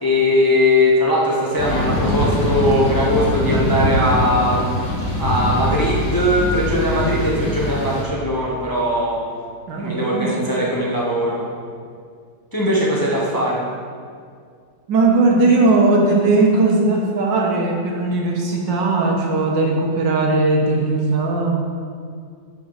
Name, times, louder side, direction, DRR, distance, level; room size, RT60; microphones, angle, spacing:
voice 1, 0.0-4.7 5.2-9.2 9.7-11.4 12.5-13.6, left 1 dB, 15° left, -4 dB, 0.8 m, -19 dB
sound 1, 1.6-8.0, left 1 dB, 75° left, 2.4 m, -22 dB
voice 2, 9.7-10.4 14.9-21.5, right 2 dB, 85° right, 0 dB, 1.9 m, -18 dB
10.0 x 5.7 x 4.0 m, 2.1 s
omnidirectional pair, 1.9 m